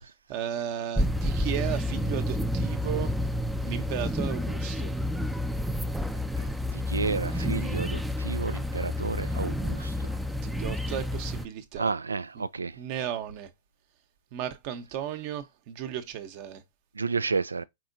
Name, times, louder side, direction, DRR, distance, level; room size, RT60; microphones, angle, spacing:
voice 1, 0.3-3.2 3.6-4.9 7.4-7.5 10.4-11.9 12.3-12.4 12.8-13.5 14.3-16.6, right 10 dB, 45° right, 0.9 m, -35 dB
sound 1, 1.0-11.5, left 1 dB, 5° right, 0.5 m, -30 dB
voice 2, 6.7-9.9 11.8-12.8 17.0-17.6, right 4 dB, 90° right, 0.4 m, -31 dB
4.5 x 4.3 x 2.6 m
hypercardioid pair, 115°, 0 cm